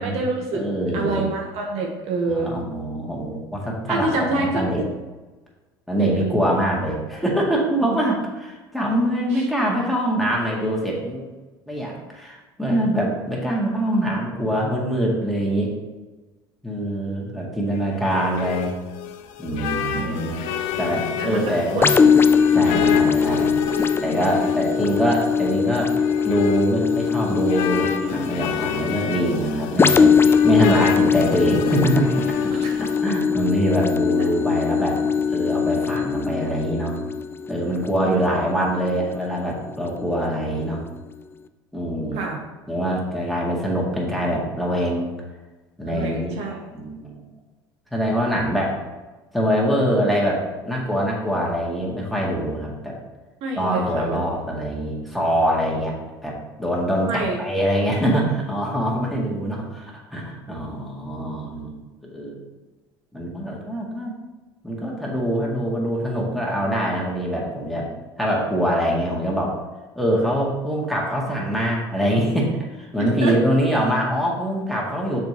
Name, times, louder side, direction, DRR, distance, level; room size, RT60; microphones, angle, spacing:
voice 1, 0.0-0.6 0.9-2.5 3.9-4.9 6.0-6.5 9.3-9.5 19.9-20.4 21.2-21.9 22.6-22.8 32.6-32.7 38.0-38.2 42.1-42.4 45.9-46.6 53.4-54.2 57.1-57.4 73.0-73.3, right 3 dB, 60° right, 1 dB, 1.1 m, -27 dB
voice 2, 0.5-1.3 2.3-4.8 5.9-11.3 11.7-15.7 16.6-18.7 19.4-20.4 20.8-21.9 22.5-23.5 24.0-25.9 26.2-30.1 30.4-32.2 33.0-35.0 35.3-37.0 37.5-40.8 41.7-42.3 42.7-45.1 45.8-46.4 46.7-47.2 47.9-48.8 49.3-53.0 53.6-56.0 56.2-61.8 62.1-62.4 63.1-64.2 64.6-67.9 68.2-69.6 70.0-75.2, equal, ahead, -3 dB, 2.0 m, -24 dB
sound 1, 17.7-33.0, left 8 dB, 65° left, 0.6 m, -31 dB
sound 2, 21.8-39.3 39.9-40.0, left 6 dB, 20° left, 0.3 m, -21 dB
6.5 x 4.9 x 3.0 m, 1.2 s
hypercardioid pair, 75°, 12 cm